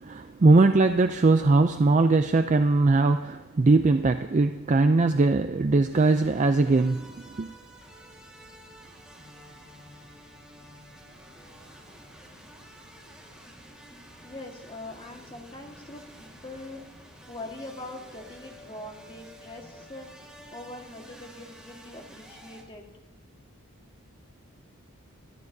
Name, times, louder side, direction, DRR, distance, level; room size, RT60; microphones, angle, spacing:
voice 1, 0.0-7.1 7.4-7.5, right 3 dB, 35° right, 8 dB, 0.4 m, -21 dB
sound 1, 5.9-22.6, equal, 5° right, 1.7 m, -50 dB
voice 2, 14.2-16.8 17.3-20.1 20.5-22.9, left 2 dB, 25° left, 1 dB, 1.6 m, -42 dB
21.5 x 14.0 x 2.7 m, 1.1 s
head